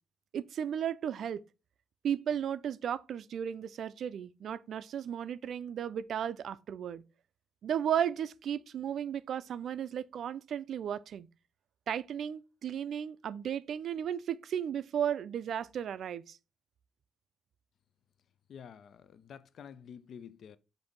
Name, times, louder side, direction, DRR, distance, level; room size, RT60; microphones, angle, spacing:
voice 1, 0.3-1.4 2.0-7.0 7.6-11.3 11.9-16.4, right 9 dB, 65° right, 0.3 m, -34 dB
voice 2, 18.5-20.6, left 7 dB, 60° left, 0.4 m, -49 dB
5.1 x 2.6 x 3.9 m
cardioid pair, 90°, 0 cm